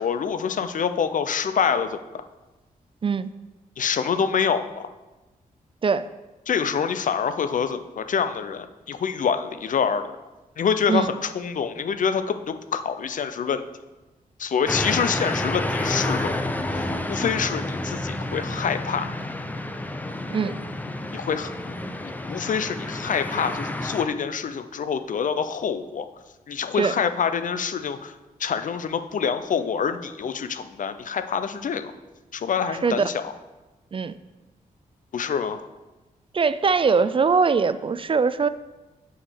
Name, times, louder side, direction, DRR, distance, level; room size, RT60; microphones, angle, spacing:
voice 1, 0.0-2.2 3.8-4.9 6.5-10.1 10.6-13.7 14.4-16.3 16.7-19.1 21.1-21.8 22.0-26.1 26.5-28.1 28.4-31.9 32.3-33.2 35.1-35.6, left 6 dB, 60° left, 10 dB, 0.6 m, -26 dB
voice 2, 3.0-3.3 5.8-6.1 10.9-11.1 20.3-20.6 26.8-26.9 32.8-33.1 33.9-34.1 36.3-38.5, right 5 dB, 35° right, 13 dB, 0.4 m, -21 dB
sound 1, 14.7-24.1, left 1 dB, 10° left, 0.6 m, -29 dB
6.0 x 4.8 x 6.4 m, 1.1 s
cardioid pair, 65°, 15 cm